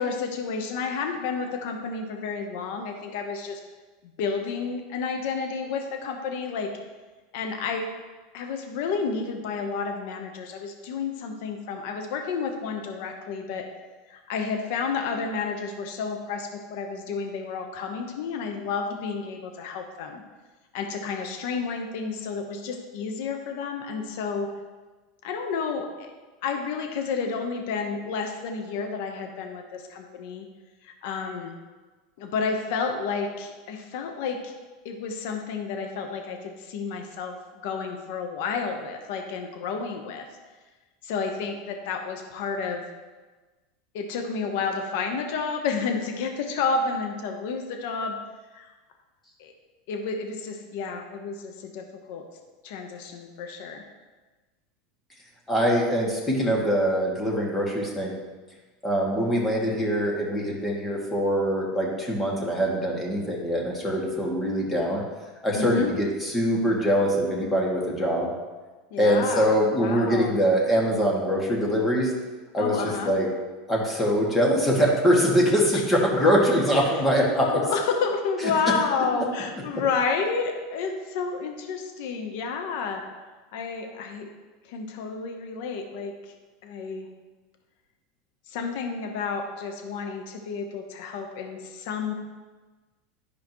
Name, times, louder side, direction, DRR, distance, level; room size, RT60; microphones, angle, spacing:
voice 1, 0.0-3.6 4.2-6.7 7.3-7.9 8.3-13.7 14.1-20.2 20.7-24.5 25.2-26.1 26.4-30.4 30.8-31.5 32.2-34.5 34.8-37.4 37.6-40.2 41.0-42.8 43.9-48.2 48.5-48.7 49.4-49.5 49.9-52.2 52.6-53.8 65.5-65.9 68.9-69.5 69.8-70.3 72.6-73.1 75.7-75.8 77.4-83.0 83.5-84.3 84.7-86.1 86.6-87.1 88.5-92.1, left 5 dB, 70° left, 4 dB, 1.1 m, -30 dB
voice 2, 55.5-58.1 58.8-65.0 65.4-68.3 69.0-72.1 72.5-73.3 73.7-77.5, equal, 15° left, -3 dB, 2.1 m, -23 dB
11.5 x 5.0 x 3.1 m, 1.3 s
supercardioid pair, 120°, 0 cm